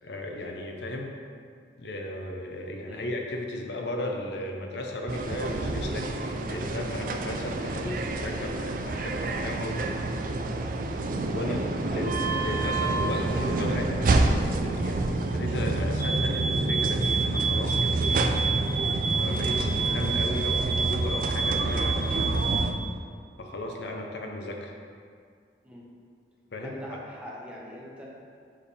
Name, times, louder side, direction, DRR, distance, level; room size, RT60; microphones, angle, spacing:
voice 1, 0.0-1.1 1.8-9.9 11.2-11.6 11.9-12.1 12.4-18.3 19.1-22.3 23.4-24.7 26.5-26.8, left 1 dB, 70° left, 1 dB, 0.6 m, -35 dB
sound 1, 5.1-22.7, right 2 dB, 50° right, 0.4 m, -28 dB
voice 2, 11.4-12.1 25.6-25.8 26.6-28.1, equal, 5° right, -5 dB, 0.9 m, -40 dB
sound 2, 16.0-22.7, right 5 dB, 50° left, 1.4 m, -29 dB
7.4 x 3.4 x 4.1 m, 2.2 s
head